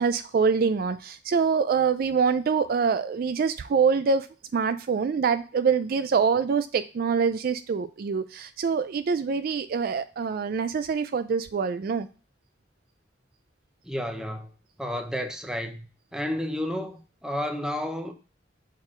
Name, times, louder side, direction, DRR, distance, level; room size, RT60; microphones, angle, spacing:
voice 1, 0.0-4.3 4.5-12.1, right 5 dB, 50° right, 0.3 m, -25 dB
voice 2, 13.8-14.5 14.8-15.9 16.1-18.1, left 1 dB, 5° right, 0.7 m, -31 dB
6.1 x 4.2 x 3.6 m
head